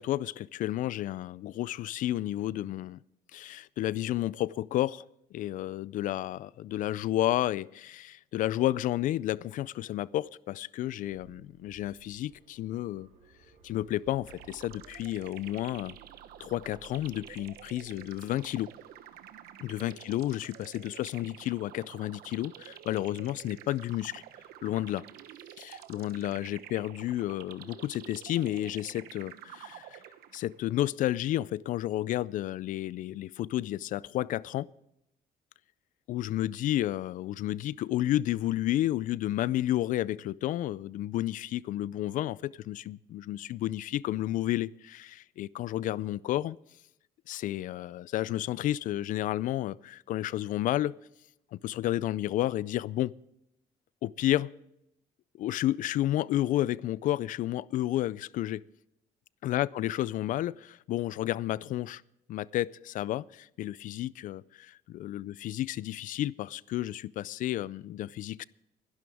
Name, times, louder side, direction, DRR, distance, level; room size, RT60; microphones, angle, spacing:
voice 1, 0.0-3.0 3.3-5.0 5.3-13.1 13.6-15.9 16.4-18.7 19.6-24.2 24.6-25.0 25.6-30.0 30.3-34.7 36.1-46.6 47.3-50.9 51.5-53.1 54.0-54.5 55.4-58.6 59.4-62.0 62.3-68.4, left 14 dB, 60° left, 0.4 m, -31 dB
sound 1, 11.0-26.9, right 3 dB, 55° right, 3.8 m, -61 dB
sound 2, 14.3-30.7, right 11 dB, 85° right, 1.1 m, -49 dB
21.5 x 11.0 x 3.5 m
cardioid pair, 140°, 15 cm